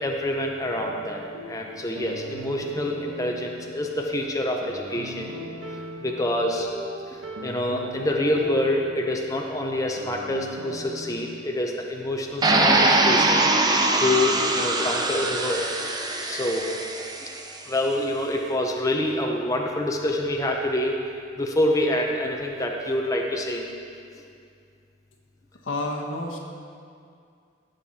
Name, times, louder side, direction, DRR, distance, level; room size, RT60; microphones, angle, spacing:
voice 1, 0.0-5.3 6.0-6.7 7.1-13.5 14.0-15.7 16.2-16.7 17.6-21.0 21.4-23.7, left 1 dB, 15° left, 1 dB, 0.7 m, -26 dB
sound 1, 0.6-11.3, right 1 dB, 90° right, 1.1 m, -39 dB
sound 2, 12.4-17.4, right 2 dB, 20° right, 0.7 m, -22 dB
voice 2, 25.6-26.4, left 2 dB, 85° left, 0 dB, 1.3 m, -29 dB
16.0 x 6.7 x 4.2 m, 2.3 s
head